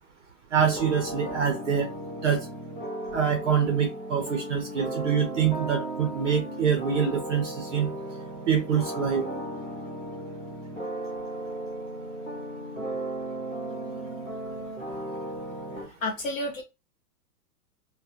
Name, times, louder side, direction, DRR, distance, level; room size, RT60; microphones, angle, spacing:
voice 1, 0.5-1.9 2.2-2.5 3.1-7.9 8.5-9.3, right 7 dB, 50° right, 0.6 m, -25 dB
sound 1, 0.6-15.8, right 1 dB, 10° right, 0.8 m, -35 dB
voice 2, 15.8-16.6, left 1 dB, 60° left, 0.7 m, -31 dB
2.4 x 2.1 x 2.7 m
hypercardioid pair, 170°, 47 cm